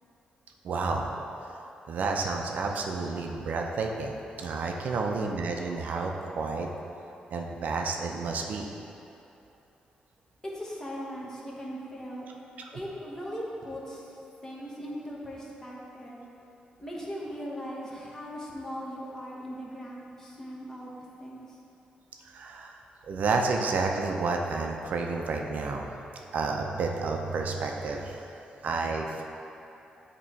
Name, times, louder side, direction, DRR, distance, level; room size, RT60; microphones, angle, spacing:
voice 1, 0.6-1.1 1.9-6.7 7.3-8.7 12.6-12.7 22.3-22.8 23.1-25.9 26.3-29.2, right 4 dB, 65° right, 2 dB, 0.5 m, -30 dB
voice 2, 10.4-12.3 12.7-16.3 16.8-21.6, equal, 20° left, -4 dB, 1.0 m, -39 dB
8.6 x 3.0 x 4.6 m, 2.8 s
wide cardioid pair, 130°, 3 cm